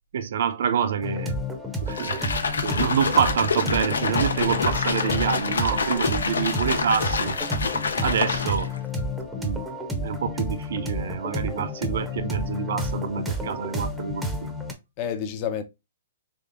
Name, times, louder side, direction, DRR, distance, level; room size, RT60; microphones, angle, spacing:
voice 1, 0.1-1.4 1.8-2.2 2.6-7.4 8.0-8.7 9.3-9.6 10.0-14.5, right 7 dB, 65° right, 0.6 m, -27 dB
sound 1, 1.0-14.7, left 1 dB, 5° right, 0.6 m, -31 dB
sound 2, 1.9-8.8, left 4 dB, 85° left, 0.5 m, -27 dB
voice 2, 7.7-8.0 9.1-9.6 15.0-15.6, left 8 dB, 35° left, 0.6 m, -33 dB
3.5 x 3.2 x 2.5 m
hypercardioid pair, 140°, 0 cm